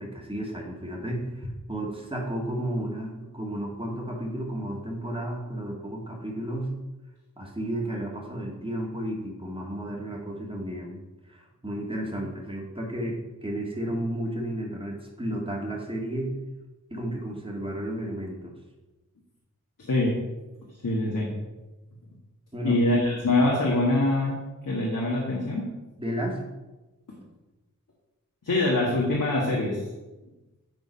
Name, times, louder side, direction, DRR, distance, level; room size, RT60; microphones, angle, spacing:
voice 1, 0.0-6.7 7.4-16.3 16.9-18.5 22.5-22.8 26.0-26.4, right 1 dB, 15° right, -1 dB, 2.0 m, -33 dB
voice 2, 19.8-20.2 20.8-21.4 22.6-24.4 24.6-25.7 28.4-29.8, left 2 dB, 80° left, -4 dB, 1.6 m, -24 dB
9.1 x 4.0 x 5.5 m, 1.1 s
wide cardioid pair, 50°, 32 cm